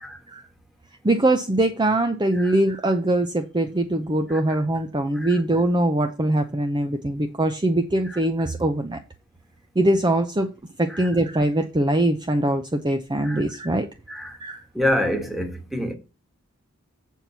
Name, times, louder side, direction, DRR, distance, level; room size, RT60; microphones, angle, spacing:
voice 1, 1.0-9.0 9.8-10.5 10.8-13.9 14.4-14.6, right 1 dB, 20° right, 0.6 m, -22 dB
voice 2, 14.7-15.9, left 1 dB, ahead, 1.5 m, -27 dB
7.6 x 4.5 x 6.8 m
head